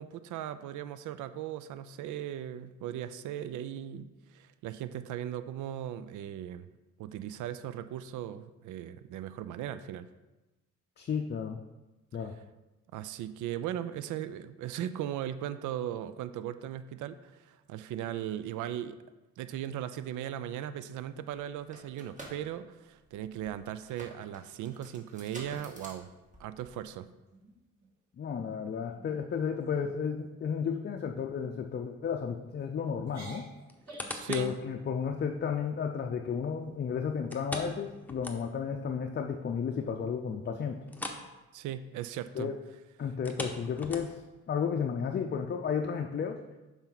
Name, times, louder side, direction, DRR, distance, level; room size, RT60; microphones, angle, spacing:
voice 1, 0.0-6.7 7.0-10.1 12.9-19.0 19.4-26.1 26.4-27.1 34.1-34.6 41.5-42.5, right 11 dB, 80° right, 13 dB, 0.5 m, -38 dB
voice 2, 11.0-11.6 12.1-12.3 28.2-33.5 34.3-40.8 42.4-42.5 43.0-44.2 44.5-46.4, left 6 dB, 35° left, 3 dB, 0.5 m, -33 dB
sound 1, 21.5-26.9, right 1 dB, 25° right, 1.6 m, -50 dB
sound 2, 27.3-27.9 28.3-28.6 29.0-29.2 29.6-30.0 30.6-30.9 31.4-31.6 32.3-32.7 33.0-34.2, right 2 dB, 60° right, 2.3 m, -51 dB
sound 3, 33.7-34.6 35.1-35.2 37.3-38.8 39.1-39.2 39.6-39.7 40.9-41.3 41.6-41.8 43.1-44.4 45.0-45.1, left 1 dB, 5° left, 0.9 m, -40 dB
7.1 x 5.5 x 4.0 m, 1.1 s
cardioid pair, 90°, 30 cm